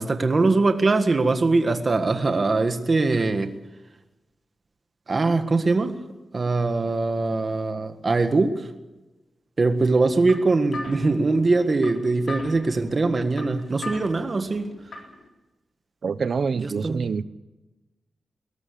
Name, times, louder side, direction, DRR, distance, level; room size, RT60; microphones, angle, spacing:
voice 1, 0.0-3.5 5.1-5.9 6.3-8.5 9.6-14.7 16.5-17.0, right 3 dB, 35° right, 7 dB, 1.7 m, -22 dB
sound 1, 9.8-15.3, left 1 dB, 60° left, 4.0 m, -40 dB
voice 2, 16.0-17.2, right 5 dB, 55° right, 15 dB, 0.8 m, -26 dB
21.5 x 19.0 x 6.8 m, 1.1 s
wide cardioid pair, 150°, 0 cm